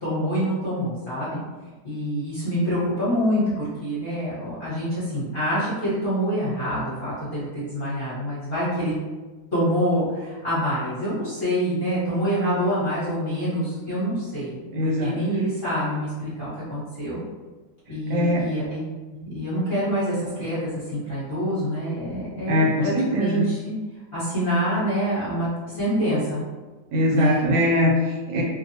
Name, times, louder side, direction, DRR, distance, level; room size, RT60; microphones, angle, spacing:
voice 1, 0.0-1.4 1.8-8.9 9.5-14.5 14.8-17.2 17.9-23.7 24.1-25.5 25.7-26.4 27.1-27.5, equal, 40° left, -11 dB, 0.9 m, -26 dB
voice 2, 14.7-15.2 18.1-18.5 22.5-23.4 26.9-28.4, left 1 dB, 75° right, -3 dB, 1.2 m, -22 dB
2.7 x 2.2 x 2.7 m, 1.2 s
omnidirectional pair, 1.9 m